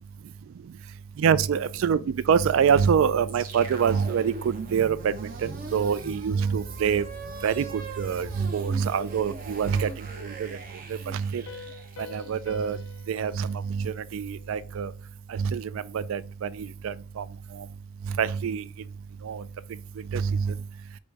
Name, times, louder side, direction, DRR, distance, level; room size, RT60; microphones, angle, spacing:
voice 1, 1.2-5.1 5.4-7.0 7.4-9.9 10.2-10.6 11.1-11.4 12.1-12.8 13.1-14.9 15.3-17.2 18.2-18.6 19.2-19.4 20.1-20.5, right 7 dB, 80° right, 0.3 m, -25 dB
sound 1, 3.3-13.5, right 3 dB, 45° right, 0.7 m, -41 dB
Piano, 11.5-14.9, left 6 dB, 75° left, 0.4 m, -46 dB
5.0 x 2.1 x 4.7 m
head